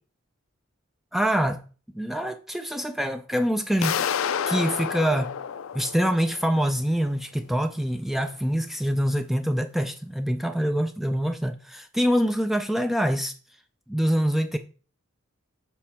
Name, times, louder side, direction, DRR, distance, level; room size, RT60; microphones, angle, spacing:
voice 1, 1.1-1.6 1.9-4.1 4.5-5.3 5.7-13.3 13.9-14.6, equal, ahead, 0.3 m, -25 dB
sound 1, 3.8-6.7, left 8 dB, 75° left, 0.4 m, -29 dB
7.4 x 4.5 x 4.3 m
head